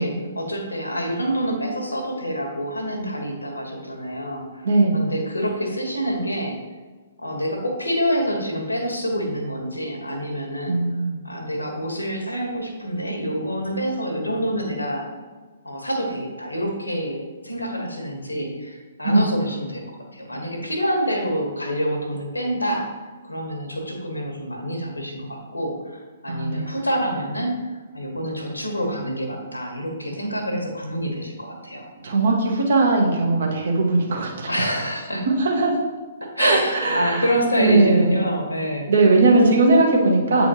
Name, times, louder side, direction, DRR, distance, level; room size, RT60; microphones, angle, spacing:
voice 1, 0.0-4.7 4.9-6.6 7.2-10.8 11.2-15.2 15.6-22.9 23.2-31.9 34.5-35.2 36.2-38.9, equal, 85° left, 1 dB, 1.3 m, -27 dB
voice 2, 4.6-5.0 10.7-11.2 19.0-19.2 26.3-26.6 32.0-34.5 35.3-35.8 36.4-37.2 37.6-38.2 38.9-40.5, right 2 dB, 60° right, -1 dB, 1.2 m, -19 dB
8.1 x 4.2 x 2.9 m, 1.3 s
figure-of-eight pair, 120°, 0 cm